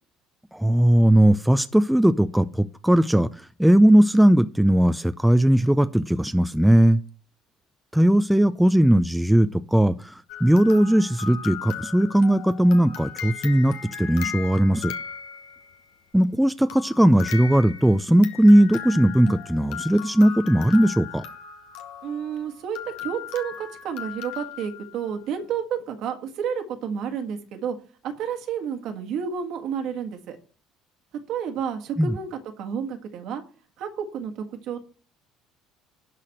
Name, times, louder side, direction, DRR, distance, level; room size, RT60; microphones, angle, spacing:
voice 1, 0.5-3.3 3.6-7.0 7.9-14.9 16.1-21.2 32.0-32.2, right 1 dB, 5° right, 0.6 m, -18 dB
sound 1, 10.3-15.8 16.7-25.2, left 8 dB, 65° left, 1.2 m, -38 dB
voice 2, 22.0-27.8 28.2-30.4 31.3-33.4 33.8-34.8, right 7 dB, 60° right, 1.7 m, -31 dB
11.5 x 4.1 x 7.6 m
hypercardioid pair, 60°, 0 cm